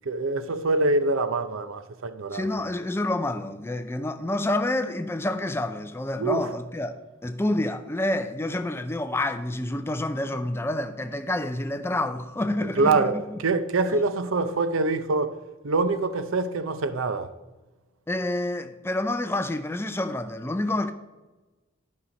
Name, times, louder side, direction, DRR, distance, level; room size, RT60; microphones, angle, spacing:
voice 1, 0.1-2.5 6.2-6.4 12.6-15.4 15.6-17.3, right 3 dB, 75° right, 0.6 m, -25 dB
voice 2, 2.3-7.0 7.2-13.4 13.9-14.0 18.1-20.9, left 1 dB, 10° left, 0.4 m, -28 dB
11.5 x 5.6 x 5.2 m
head